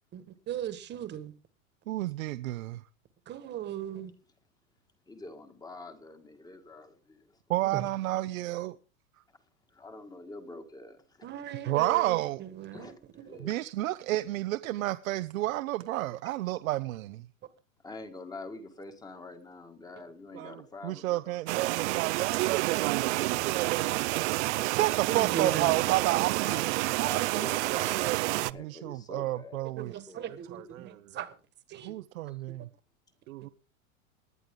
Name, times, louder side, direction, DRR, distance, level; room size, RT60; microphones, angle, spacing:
voice 1, 0.1-1.3 3.3-4.1 7.7-7.8 11.2-12.9 13.3-13.4 25.1-25.8 29.8-31.3 31.7-31.9, right 10 dB, 25° right, 1.7 m, -37 dB
voice 2, 1.9-2.8 7.5-8.8 11.6-12.4 13.4-17.3 20.3-26.7 27.0-30.0 30.3-31.2 31.8-32.7 33.3-33.5, right 16 dB, 80° right, 0.9 m, -31 dB
voice 3, 5.1-7.4 9.3-9.4 9.7-11.3 12.7-13.6 17.8-22.0 25.1-25.8 26.4-26.6 27.0-29.6 30.1-30.4 32.3-32.4, left 3 dB, 10° left, 1.7 m, -46 dB
sound 1, 21.5-28.5, right 20 dB, 55° right, 0.6 m, -29 dB
19.0 x 11.0 x 3.8 m
supercardioid pair, 150°, 40 cm